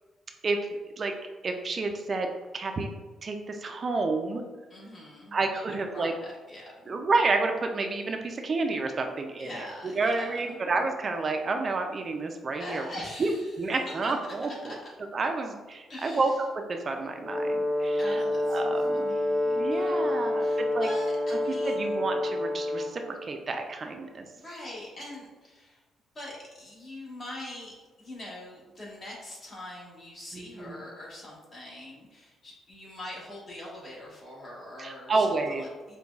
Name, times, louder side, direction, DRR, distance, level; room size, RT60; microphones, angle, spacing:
voice 1, 1.4-2.9 3.2-4.4 5.3-6.1 6.9-9.6 10.0-12.8 13.2-13.3 13.6-14.8 15.1-16.3 16.7-18.2 18.5-19.1 19.5-20.9 21.6-24.2 30.3-30.8 34.8-35.6, right 3 dB, 40° right, 4 dB, 0.3 m, -30 dB
voice 2, 4.7-6.9 9.4-10.6 12.6-13.8 14.0-14.1 14.5-14.9 15.9-16.4 18.0-21.9 24.3-25.8 26.1-36.0, left 1 dB, 45° left, -5 dB, 1.4 m, -43 dB
Brass instrument, 17.2-23.2, left 1 dB, 5° right, 0.8 m, -28 dB
5.3 x 2.2 x 2.3 m, 1.3 s
cardioid pair, 90°, 0 cm